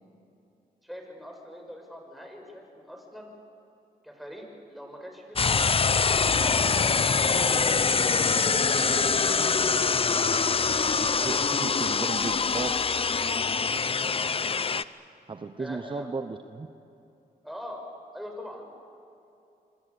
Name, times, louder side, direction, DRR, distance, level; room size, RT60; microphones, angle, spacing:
voice 1, 0.8-3.3 4.0-7.6 8.2-10.8 11.2-11.7 15.6-16.1 17.4-17.8 18.1-18.7, equal, ahead, 2 dB, 6.5 m, -43 dB
sound 1, 5.4-14.8, left 5 dB, 35° left, 0.7 m, -24 dB
voice 2, 11.0-12.7 15.3-16.7, right 4 dB, 30° right, 8 dB, 1.0 m, -35 dB
26.5 x 24.5 x 7.0 m, 2.7 s
cardioid pair, 75°, 16 cm